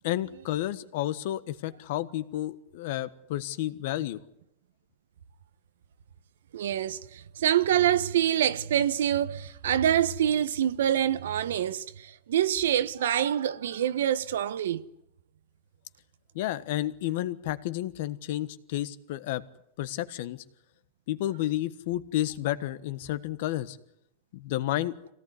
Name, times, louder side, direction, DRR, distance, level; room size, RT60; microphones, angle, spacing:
voice 1, 0.0-4.2 16.3-19.4 19.8-20.4 21.1-23.8 24.3-24.9, left 14 dB, 60° left, 1.4 m, -31 dB
voice 2, 6.5-14.8, right 10 dB, 90° right, 1.2 m, -26 dB
24.5 x 17.5 x 9.6 m
supercardioid pair, 150°, 0 cm